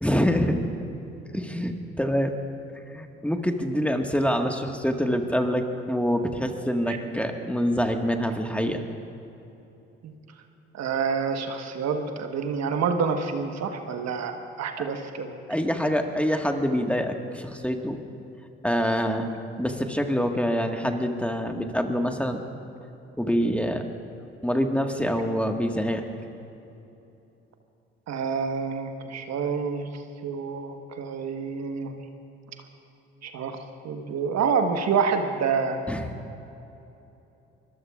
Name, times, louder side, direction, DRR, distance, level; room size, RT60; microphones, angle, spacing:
voice 1, 0.0-0.6 1.3-2.3 2.7-8.8 15.5-18.0 18.6-19.3 19.6-22.4 23.2-23.8 24.4-26.1 35.9-36.0, equal, 5° left, 4 dB, 1.6 m, -25 dB
voice 2, 10.7-15.4 28.1-29.9 30.2-32.0 33.2-35.8, right 5 dB, 60° right, 5 dB, 1.4 m, -28 dB
24.0 x 21.5 x 2.5 m, 2.9 s
hypercardioid pair, 45°, 31 cm